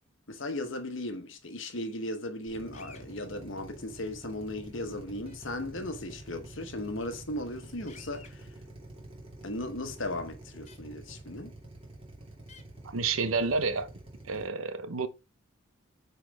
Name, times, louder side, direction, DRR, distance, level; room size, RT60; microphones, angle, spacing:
voice 1, 0.3-8.5 9.4-11.5, left 1 dB, 65° left, 1.2 m, -37 dB
Drill, 2.5-14.5, right 1 dB, 25° right, 2.4 m, -47 dB
sound 1, 2.7-3.1 5.3-5.4 7.9-8.3 10.7-10.8 12.5-12.6, left 5 dB, 35° left, 0.9 m, -52 dB
voice 2, 12.8-13.9 14.2-15.1, right 4 dB, 90° right, 0.9 m, -29 dB
9.3 x 4.2 x 3.4 m
head